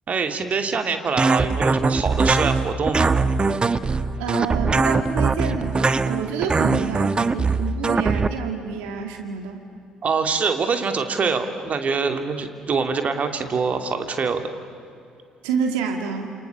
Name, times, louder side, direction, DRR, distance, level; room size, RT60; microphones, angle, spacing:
voice 1, 0.1-3.1 10.0-14.5, right 5 dB, 40° right, 6 dB, 2.8 m, -24 dB
sound 1, 1.2-8.3, right 4 dB, 25° right, 1.1 m, -21 dB
voice 2, 4.2-9.6 15.4-16.3, right 6 dB, 70° right, 4 dB, 2.1 m, -28 dB
28.5 x 28.0 x 7.1 m, 2.5 s
figure-of-eight pair, 45°, 4 cm